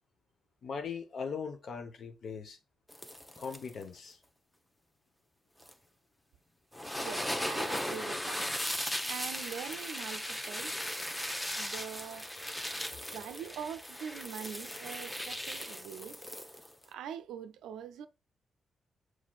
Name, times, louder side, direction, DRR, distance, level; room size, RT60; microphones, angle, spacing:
voice 1, 0.6-2.6 3.4-4.2 12.9-13.0, left 6 dB, 60° left, 0.9 m, -40 dB
sound 1, 2.9-3.8 5.6-5.7 6.7-16.8, equal, 10° left, 0.8 m, -37 dB
voice 2, 7.0-8.5 9.1-10.7 11.6-12.3 13.1-16.2 16.9-18.1, right 8 dB, 75° right, 0.4 m, -43 dB
7.2 x 3.2 x 2.3 m
hypercardioid pair, 40°, 0 cm